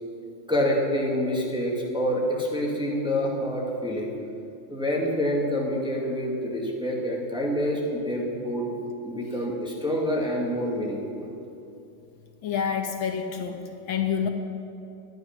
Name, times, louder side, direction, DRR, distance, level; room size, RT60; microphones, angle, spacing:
voice 1, 0.5-4.1 4.7-8.7 9.0-11.3, equal, ahead, -2 dB, 1.8 m, -27 dB
voice 2, 12.4-14.3, left 7 dB, 70° left, 4 dB, 1.7 m, -28 dB
22.0 x 9.2 x 6.0 m, 2.8 s
omnidirectional pair, 2.3 m